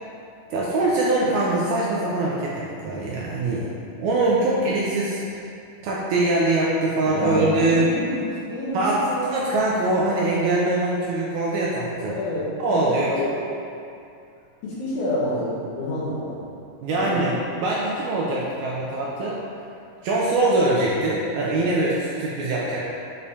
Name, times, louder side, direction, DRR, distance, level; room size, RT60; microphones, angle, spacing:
voice 1, 0.5-3.7 4.0-5.4 5.8-7.9 8.7-9.0 9.3-12.2 12.6-13.1 16.8-19.4 20.0-22.8, right 2 dB, 80° right, -5 dB, 1.8 m, -23 dB
voice 2, 7.1-9.5 12.1-12.4 12.7-13.4 14.6-16.5 16.9-17.2, left 1 dB, 65° left, -9 dB, 2.5 m, -29 dB
Acoustic guitar, 7.1-9.4, left 3 dB, 60° right, 1.1 m, -36 dB
6.7 x 5.1 x 2.7 m, 2.6 s
omnidirectional pair, 3.9 m